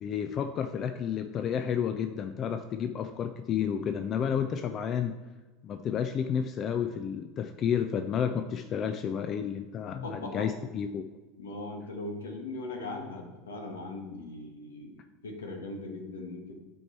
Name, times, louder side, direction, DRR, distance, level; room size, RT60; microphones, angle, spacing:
voice 1, 0.0-5.1 5.6-11.0, left 8 dB, 40° left, 8 dB, 0.4 m, -31 dB
voice 2, 10.0-10.5 11.4-16.5, left 2 dB, 80° left, 3 dB, 1.3 m, -39 dB
7.9 x 4.6 x 4.5 m, 1.2 s
hypercardioid pair, 80°, 0 cm